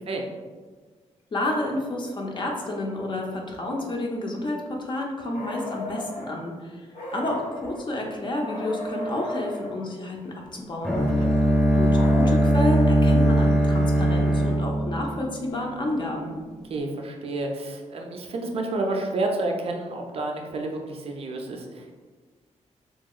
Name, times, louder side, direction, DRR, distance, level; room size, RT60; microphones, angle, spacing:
voice 1, 1.3-11.0 11.7-16.4, left 1 dB, 40° left, 0 dB, 0.5 m, -30 dB
sound 1, 5.3-6.3 6.9-7.8 8.4-9.7 10.8-12.3, left 2 dB, 80° left, 0.6 m, -35 dB
Bowed string instrument, 10.8-15.8, right 1 dB, 5° left, 0.8 m, -20 dB
voice 2, 16.7-21.9, right 2 dB, 50° right, 1 dB, 0.4 m, -30 dB
2.8 x 2.8 x 2.3 m, 1.4 s
cardioid pair, 110°, 12 cm